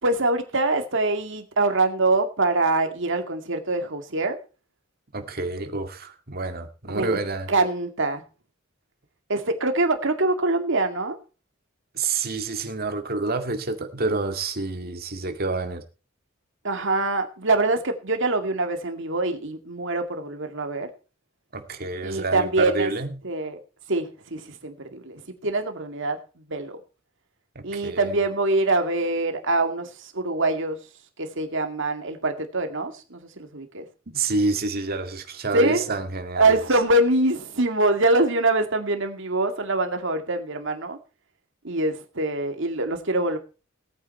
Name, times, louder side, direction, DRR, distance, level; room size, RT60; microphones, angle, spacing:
voice 1, 0.0-4.4 6.9-7.2 7.5-8.2 9.3-11.2 16.6-20.9 22.0-22.9 23.2-23.6 23.9-26.2 26.5-26.8 27.6-30.8 31.2-33.8 35.5-35.8 36.4-41.0 41.6-43.4, right 2 dB, 65° right, 2.3 m, -24 dB
voice 2, 5.1-7.5 11.9-15.8 21.5-23.2 27.6-28.1 30.2-30.3 34.1-36.6, right 3 dB, 50° right, 2.1 m, -28 dB
18.0 x 9.3 x 4.4 m
head